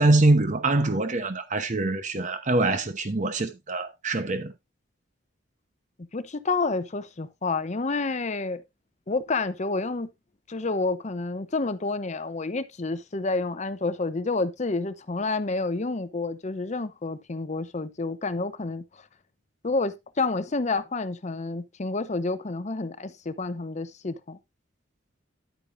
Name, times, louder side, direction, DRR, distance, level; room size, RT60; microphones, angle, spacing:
voice 1, 0.0-4.5, right 2 dB, 40° right, 0.9 m, -24 dB
voice 2, 6.0-8.6 9.1-10.1 10.5-18.8 19.6-24.4, left 3 dB, 35° left, 0.7 m, -29 dB
10.5 x 8.9 x 2.6 m
head